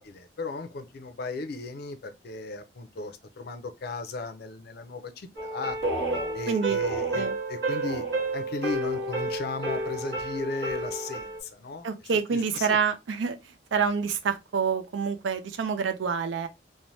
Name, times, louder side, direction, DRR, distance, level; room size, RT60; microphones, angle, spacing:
voice 1, 0.0-5.8 6.3-8.0 8.3-11.9 12.3-12.8, left 3 dB, 60° left, 0.5 m, -36 dB
sound 1, 5.4-11.4, right 2 dB, 65° right, 1.3 m, -30 dB
voice 2, 6.5-6.8 7.1-7.3 11.8-16.5, right 6 dB, 85° right, 0.4 m, -27 dB
3.1 x 2.1 x 2.6 m
head